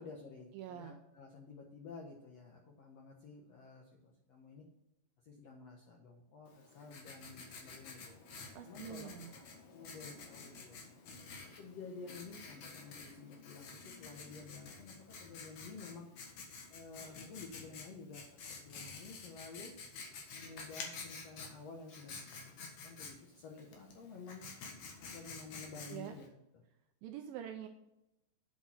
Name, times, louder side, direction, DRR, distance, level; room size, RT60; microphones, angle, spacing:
voice 1, 0.0-4.7 5.2-8.1 8.6-9.4 9.7-10.8 11.4-16.1 16.7-19.7 20.3-22.5 22.8-24.4 25.0-26.3 26.5-26.6, left 4 dB, 85° left, 0 dB, 1.4 m, -52 dB
voice 2, 0.5-1.0 8.6-9.3 25.9-26.1 27.0-27.7, right 10 dB, 80° right, 6 dB, 2.1 m, -45 dB
Writing, 6.5-26.3, left 4 dB, 55° left, 2.5 m, -50 dB
8.5 x 7.2 x 5.9 m, 0.89 s
omnidirectional pair, 4.8 m